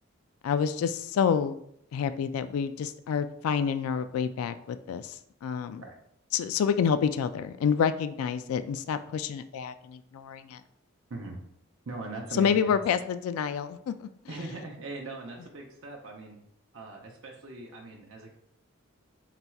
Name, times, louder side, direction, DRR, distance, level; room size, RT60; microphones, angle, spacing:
voice 1, 0.4-1.6 1.9-5.2 5.4-5.8 6.3-10.6 12.4-13.9, left 7 dB, 90° left, 12 dB, 0.3 m, -28 dB
voice 2, 11.9-12.8 14.3-16.4 16.7-18.3, right 2 dB, 70° right, 0 dB, 0.7 m, -40 dB
4.4 x 4.1 x 2.3 m, 0.71 s
head